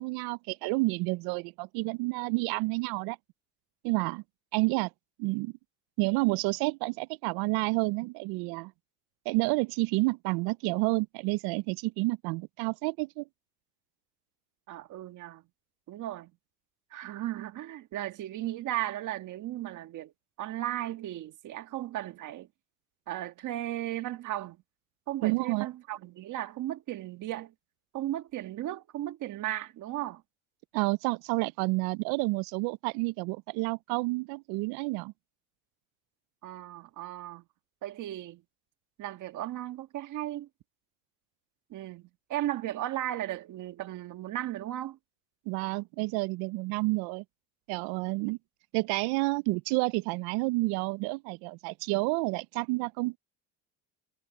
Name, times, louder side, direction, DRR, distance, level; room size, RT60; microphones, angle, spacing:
voice 1, 0.0-3.2 3.8-4.2 4.5-4.9 5.2-5.5 6.0-8.7 9.3-13.2 25.2-25.7 30.7-35.1 45.5-47.2 47.7-48.4 48.7-53.2, right 25 dB, 65° right, 0.5 m, -29 dB
voice 2, 14.7-15.4 15.9-16.3 16.9-20.1 20.4-22.5 23.1-24.6 25.1-27.5 27.9-30.2 36.4-37.4 37.8-38.4 39.0-40.5 41.7-45.0, right 14 dB, 50° right, 1.8 m, -36 dB
cardioid pair, 140°, 39 cm